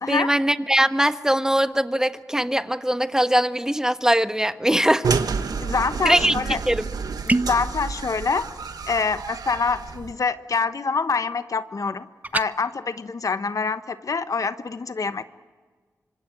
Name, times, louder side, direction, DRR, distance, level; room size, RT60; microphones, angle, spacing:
voice 1, 0.1-5.0 6.0-6.3 6.7-6.9, right 1 dB, 10° right, 10 dB, 1.3 m, -21 dB
sound 1, 5.0-10.1, right 5 dB, 75° right, 1.4 m, -29 dB
voice 2, 5.6-6.6 7.3-8.5 8.9-12.1 12.3-15.2, left 4 dB, 60° left, 11 dB, 1.1 m, -25 dB
sound 2, 7.3-7.7 12.2-12.5, right 2 dB, 25° right, 0.8 m, -23 dB
26.0 x 25.0 x 9.1 m, 1.4 s
cardioid pair, 50°, 7 cm